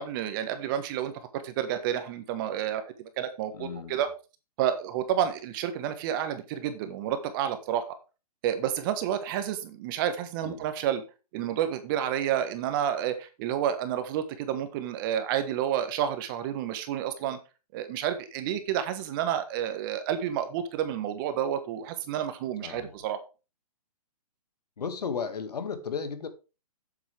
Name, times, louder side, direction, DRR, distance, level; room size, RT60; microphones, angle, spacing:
voice 1, 0.0-4.1 4.6-7.8 8.4-11.0 11.3-17.4 17.7-23.2, right 10 dB, 35° right, 1.4 m, -30 dB
voice 2, 3.5-4.0 10.4-10.6 22.6-23.0 24.8-26.3, left 6 dB, 85° left, 2.1 m, -34 dB
9.2 x 7.4 x 3.5 m
hypercardioid pair, 150°, 20 cm